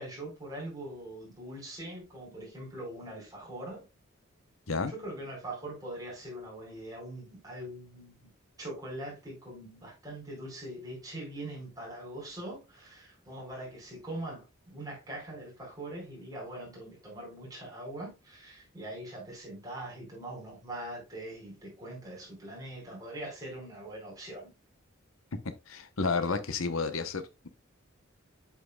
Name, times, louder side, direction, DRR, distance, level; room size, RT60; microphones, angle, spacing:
voice 1, 0.0-3.8 4.9-8.3 8.6-24.5, right 1 dB, 20° right, 4.8 m, -42 dB
voice 2, 25.4-27.5, left 4 dB, 80° left, 0.9 m, -31 dB
8.2 x 7.6 x 2.3 m
head